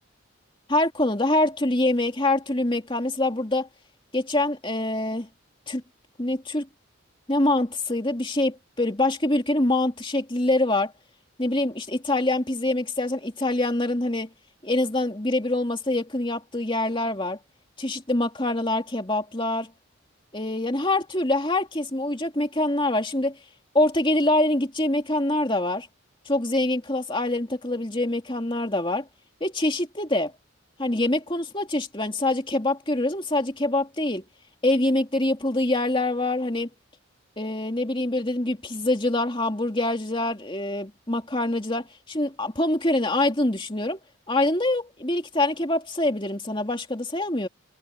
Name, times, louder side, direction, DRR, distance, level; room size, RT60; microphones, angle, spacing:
voice 1, 0.7-3.7 4.1-5.3 5.7-5.8 6.2-6.7 7.3-10.9 11.4-14.3 14.6-17.4 17.8-19.7 20.3-23.4 23.7-25.9 26.3-29.0 29.4-30.3 30.8-34.2 34.6-36.7 37.4-44.0 44.3-47.5, left 2 dB, 25° left, 2.8 m, -25 dB
head